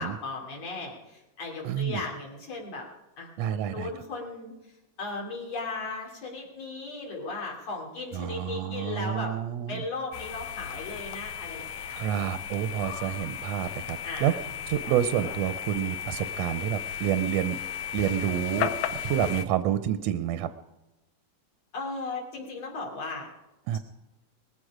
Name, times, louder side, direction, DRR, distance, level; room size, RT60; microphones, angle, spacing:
voice 1, 0.0-2.9 3.2-4.5 5.0-9.3 9.7-12.0 14.0-14.4 21.7-23.3 23.7-23.8, left 3 dB, 60° left, -1 dB, 4.2 m, -36 dB
voice 2, 1.6-2.0 3.4-3.9 8.1-9.8 11.9-14.3 14.7-17.6 17.9-20.5 23.7-23.8, right 11 dB, 75° right, 11 dB, 1.6 m, -28 dB
sound 1, 10.1-19.5, left 9 dB, 80° left, 2.1 m, -35 dB
20.5 x 14.5 x 4.9 m, 0.99 s
omnidirectional pair, 3.4 m